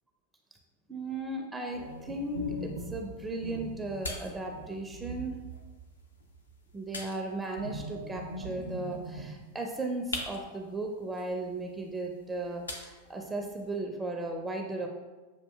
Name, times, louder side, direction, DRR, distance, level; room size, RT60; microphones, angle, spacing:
voice 1, 0.9-5.4 6.7-14.9, right 2 dB, 10° right, 2 dB, 0.4 m, -36 dB
sound 1, 1.7-6.0 6.3-6.5 7.6-9.3, right 1 dB, 85° right, 0.7 m, -42 dB
sound 2, 1.8-13.8, left 2 dB, 75° left, 0.5 m, -46 dB
7.0 x 2.5 x 2.3 m, 1.2 s
figure-of-eight pair, 90°, 0 cm